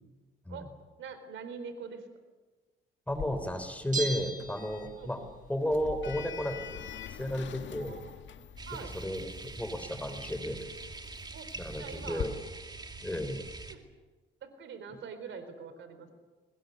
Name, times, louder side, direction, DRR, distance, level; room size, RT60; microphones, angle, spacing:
voice 1, 1.0-2.1 5.0-5.3 7.8-8.1 8.7-8.9 11.3-11.5 11.8-12.3 13.7-13.8 14.4-16.1, right 6 dB, 75° right, 9 dB, 4.1 m, -44 dB
Sliding door, 3.1-12.2, left 9 dB, 70° left, 1.7 m, -45 dB
voice 2, 3.1-5.2 5.5-6.8 7.1-8.0 8.9-9.3 9.6-10.6 11.6-12.3 13.0-13.4, equal, 5° left, 9 dB, 3.9 m, -33 dB
Bell, 3.9-5.3 5.6-5.7, right 4 dB, 40° right, 3.0 m, -37 dB
sound 1, 8.6-13.8, right 2 dB, 20° right, 2.5 m, -44 dB
22.0 x 20.5 x 9.5 m, 1.2 s
cardioid pair, 90°, 20 cm